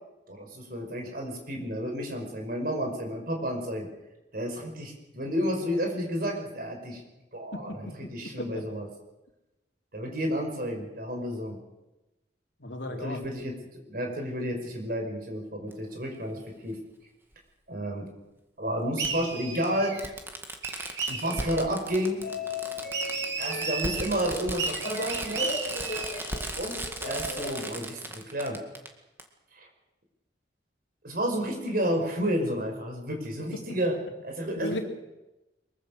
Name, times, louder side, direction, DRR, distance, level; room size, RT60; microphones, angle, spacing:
voice 1, 0.3-3.9 4.3-7.0 7.3-8.9 9.9-11.6 13.0-13.5 13.9-16.8 17.7-18.1 18.6-20.0 21.1-22.2 23.4-25.5 26.6-26.8 27.0-28.6 29.6-29.7 31.0-34.0 34.2-34.8, equal, 50° right, 2 dB, 5.5 m, -31 dB
voice 2, 7.5-7.9 8.4-8.6 12.6-13.2 34.6-34.8, left 1 dB, 75° left, 4 dB, 3.1 m, -35 dB
Fireworks, 15.7-15.8 17.3-17.4 19.0-19.1 19.6-19.7 20.0-28.9 29.2-29.3, right 1 dB, 10° right, 2.1 m, -37 dB
sound 1, 19.0-20.1 20.6-21.6 22.9-24.1 24.6-26.3, right 5 dB, 75° right, 3.1 m, -34 dB
sound 2, 21.1-28.1, left 2 dB, 50° left, 3.3 m, -38 dB
23.5 x 23.0 x 6.6 m, 1.0 s
head